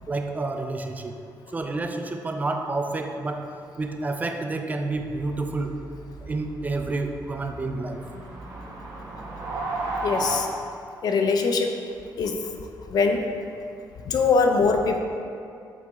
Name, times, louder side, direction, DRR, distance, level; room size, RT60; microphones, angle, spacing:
voice 1, 0.1-1.2 1.5-5.8 6.2-8.0, right 2 dB, 20° right, 5 dB, 0.4 m, -29 dB
sound 1, 4.9-10.4, right 2 dB, 65° right, 1.4 m, -34 dB
voice 2, 10.0-10.5 11.0-11.7 12.2-12.4 12.9-13.2 14.1-15.0, left 4 dB, 60° left, 5 dB, 0.5 m, -22 dB
7.4 x 4.1 x 3.5 m, 2.5 s
cardioid pair, 120°, 8 cm